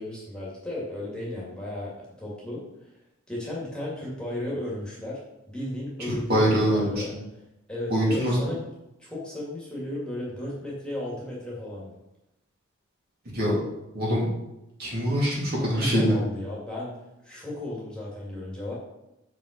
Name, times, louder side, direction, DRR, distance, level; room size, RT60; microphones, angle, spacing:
voice 1, 0.0-1.9 2.2-2.6 3.3-5.2 5.5-7.2 7.7-8.6 9.0-11.9 15.6-17.0 17.2-18.7, left 1 dB, 5° left, -5 dB, 2.1 m, -34 dB
voice 2, 6.3-6.8 7.9-8.4 13.3-13.5 13.9-14.2 14.8-16.1, equal, 45° right, -5 dB, 2.8 m, -23 dB
6.9 x 5.7 x 5.1 m, 0.91 s
head